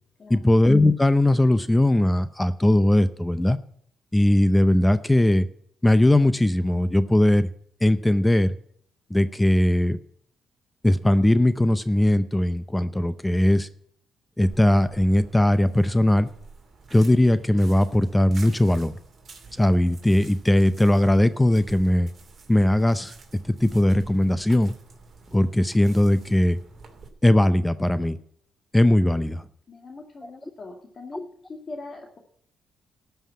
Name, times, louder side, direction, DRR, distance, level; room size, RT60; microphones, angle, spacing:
voice 1, 0.3-3.6 4.1-5.5 5.8-7.5 7.8-8.6 9.1-10.0 10.8-13.7 14.4-16.3 16.9-19.0 19.6-22.1 22.5-23.1 23.6-24.7 25.3-26.6 27.2-28.2 28.7-29.4 30.2-30.3, left 1 dB, 10° left, 13 dB, 0.6 m, -19 dB
sound 1, 14.4-27.1, right 4 dB, 45° right, 2.6 m, -49 dB
voice 2, 29.7-32.2, left 3 dB, 40° left, 2 dB, 2.0 m, -41 dB
13.0 x 5.7 x 8.5 m, 0.64 s
cardioid pair, 90°, 0 cm